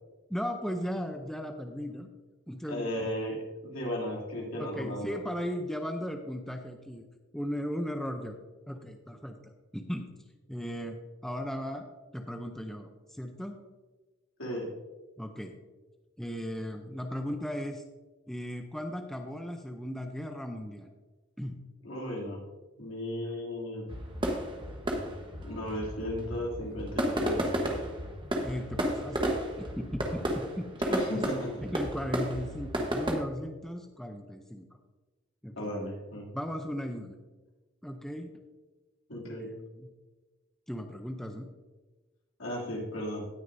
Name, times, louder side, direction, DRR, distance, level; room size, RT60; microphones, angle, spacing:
voice 1, 0.3-2.1 2.5-2.9 4.6-7.1 7.3-8.4 8.7-10.1 10.5-11.0 11.2-11.9 12.1-13.6 15.2-15.5 16.2-17.8 18.3-20.9 21.4-21.6 28.4-29.2 29.6-31.2 31.6-34.7 35.4-35.7 36.3-37.2 37.8-38.3 39.4-39.5 39.8-39.9 40.7-41.5, equal, ahead, 4 dB, 0.5 m, -37 dB
voice 2, 2.7-5.2 14.4-14.7 21.8-22.4 22.8-23.9 25.4-27.4 30.9-31.7 35.6-36.3 39.1-39.5 42.4-43.3, equal, 70° left, -3 dB, 2.7 m, -35 dB
sound 1, 23.9-33.1, right 1 dB, 25° right, 1.1 m, -32 dB
17.5 x 6.5 x 2.6 m, 1.2 s
head